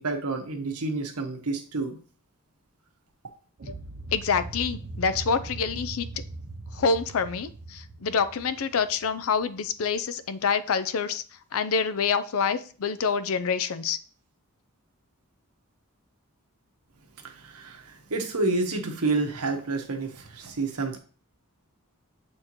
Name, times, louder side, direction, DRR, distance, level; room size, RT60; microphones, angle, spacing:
voice 1, 0.0-2.0 17.2-21.0, right 3 dB, 85° right, 4 dB, 1.2 m, -29 dB
sound 1, 3.6-9.7, right 2 dB, 50° right, 0.6 m, -40 dB
voice 2, 4.1-6.1 6.7-11.2 11.5-14.0, left 5 dB, 65° left, 13 dB, 0.5 m, -26 dB
7.5 x 4.4 x 3.0 m, 0.40 s
head